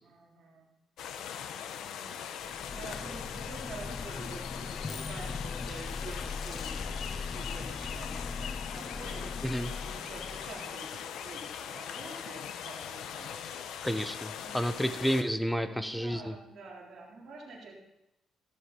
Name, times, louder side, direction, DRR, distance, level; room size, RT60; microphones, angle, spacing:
voice 1, 0.0-0.7 1.3-13.6 14.4-14.6 15.6-17.7, right 3 dB, 50° right, -4 dB, 3.8 m, -48 dB
sound 1, 1.0-15.2, left 8 dB, 80° left, 1.1 m, -40 dB
sound 2, 2.4-10.9, left 4 dB, 30° left, 0.8 m, -40 dB
voice 2, 13.8-16.3, equal, 5° left, 11 dB, 1.1 m, -30 dB
14.5 x 13.0 x 5.4 m, 0.90 s
cardioid pair, 90°, 0 cm